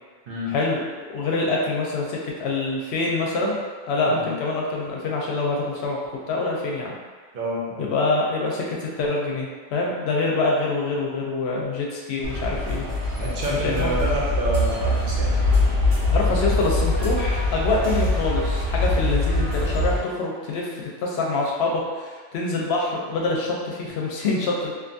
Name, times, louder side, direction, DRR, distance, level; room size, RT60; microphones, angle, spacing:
voice 1, 0.5-0.8 1.1-3.6 3.9-6.0 6.3-6.9 7.8-12.8 13.5-14.0 16.1-24.7, left 3 dB, 70° left, -2 dB, 0.8 m, -25 dB
voice 2, 7.3-7.9 13.2-15.4, equal, 55° right, -4 dB, 0.7 m, -28 dB
sound 1, 12.2-20.0, left 2 dB, 85° right, 1.0 m, -23 dB
2.6 x 2.3 x 2.6 m, 1.4 s
omnidirectional pair, 1.2 m